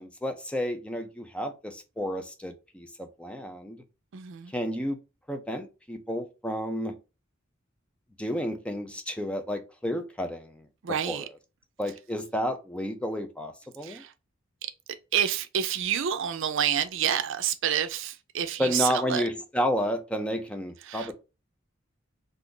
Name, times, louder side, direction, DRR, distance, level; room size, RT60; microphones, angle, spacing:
voice 1, 0.0-3.8 4.5-5.0 5.3-7.0 8.2-10.7 11.1-11.3 11.8-14.0 18.6-21.1, equal, 5° left, 0.4 m, -31 dB
voice 2, 4.1-4.5 10.8-11.2 13.8-14.1 15.1-19.2 20.9-21.1, right 9 dB, 65° right, 0.4 m, -28 dB
2.5 x 2.4 x 3.7 m
head